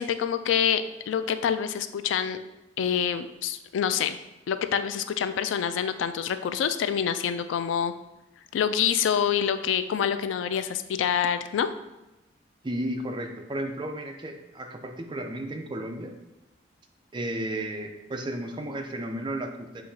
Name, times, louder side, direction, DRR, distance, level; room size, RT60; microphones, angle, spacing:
voice 1, 0.0-2.4 2.8-4.2 4.5-7.9 8.5-11.7, left 8 dB, 85° left, 11 dB, 0.3 m, -26 dB
voice 2, 12.6-16.1 17.1-19.8, right 1 dB, 25° right, 4 dB, 0.4 m, -33 dB
7.0 x 2.8 x 2.7 m, 0.98 s
head